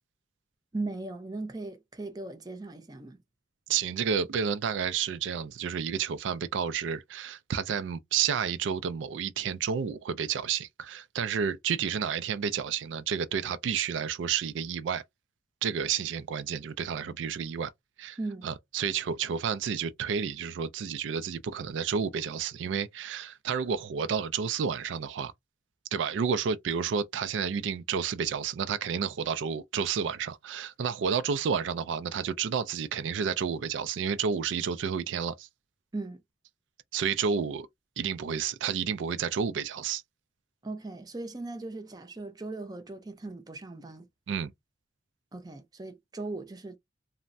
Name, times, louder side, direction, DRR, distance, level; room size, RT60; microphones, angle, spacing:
voice 1, 0.7-3.2 18.2-18.5 35.9-36.2 40.6-44.1 45.3-46.8, right 2 dB, 20° right, 0.5 m, -38 dB
voice 2, 3.7-15.0 15.6-17.7 18.0-18.2 18.4-25.3 25.9-35.5 36.9-37.7 38.0-40.0 44.3-44.5, right 7 dB, 85° right, 0.3 m, -30 dB
3.2 x 2.1 x 2.6 m
head